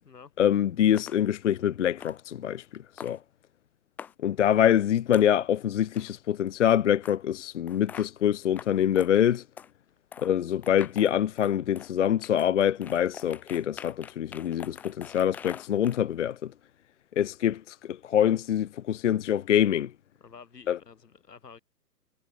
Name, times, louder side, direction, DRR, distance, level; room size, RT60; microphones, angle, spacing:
voice 1, 0.4-2.6 3.0-3.2 4.2-9.4 10.2-16.5 17.2-17.8 18.0-19.9 20.7-20.8, left 10 dB, 50° left, 0.5 m, -25 dB
sound 1, 0.9-1.2 2.0-2.2 3.0-3.2 4.0-4.1 5.1-5.3 5.9-6.1 7.0-7.1 7.7-8.1 8.6-8.7 9.0-9.1 9.6-9.7 10.1-10.3 10.6-11.9 12.2-16.0, left 8 dB, 5° left, 0.6 m, -44 dB
voice 2, 20.2-21.6, left 5 dB, 80° left, 6.2 m, -50 dB
hypercardioid pair, 150°, 48 cm